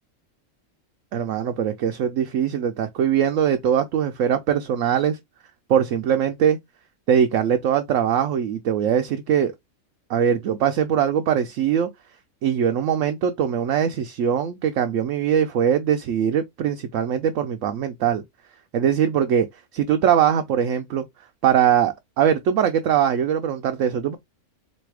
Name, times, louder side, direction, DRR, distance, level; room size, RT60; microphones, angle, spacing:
voice 1, 1.1-5.2 5.7-6.6 7.1-9.5 10.1-11.9 12.4-18.2 18.7-19.5 19.7-21.0 21.4-24.2, right 9 dB, 70° right, 0.9 m, -21 dB
4.2 x 2.6 x 4.7 m
omnidirectional pair, 1.5 m